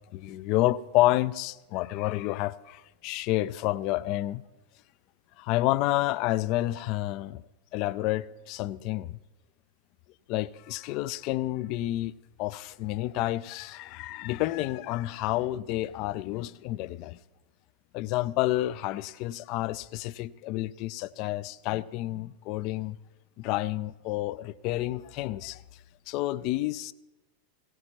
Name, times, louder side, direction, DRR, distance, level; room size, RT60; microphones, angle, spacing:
voice 1, 0.1-4.4 5.4-7.4 7.7-9.2 10.3-12.1 12.4-17.2 17.9-23.0 23.4-25.6 26.1-26.9, left 16 dB, 40° left, 0.4 m, -29 dB
18.0 x 17.0 x 3.0 m
figure-of-eight pair, 90°, 0 cm